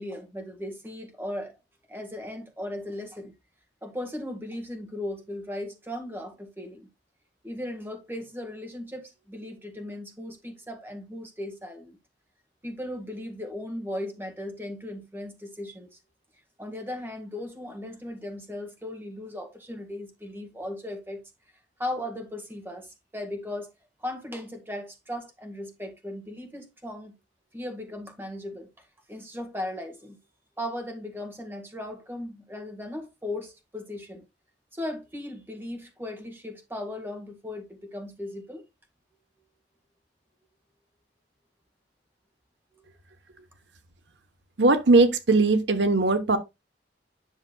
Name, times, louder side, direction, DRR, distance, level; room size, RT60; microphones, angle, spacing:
voice 1, 0.0-1.6 1.9-3.3 3.8-6.9 7.4-12.0 12.6-16.0 16.6-21.2 21.8-23.7 24.0-27.1 27.5-30.2 30.6-34.2 34.7-38.6 42.7-42.8, left 1 dB, 10° right, 1.7 m, -37 dB
voice 2, 44.6-46.4, right 3 dB, 75° right, 1.0 m, -19 dB
10.5 x 6.3 x 2.3 m
head